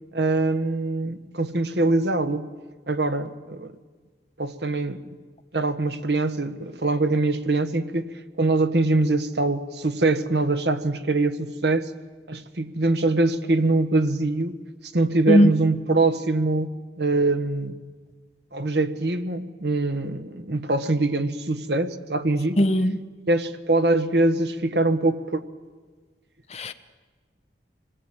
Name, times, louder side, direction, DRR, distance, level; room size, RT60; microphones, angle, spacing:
voice 1, 0.1-2.5 2.9-3.7 4.4-5.0 5.5-11.9 12.3-14.6 14.9-17.8 18.5-22.6 23.3-25.4, right 2 dB, 70° right, 1.4 m, -23 dB
voice 2, 22.6-23.0 26.5-26.7, equal, 35° left, 1.2 m, -18 dB
26.5 x 20.5 x 8.9 m
head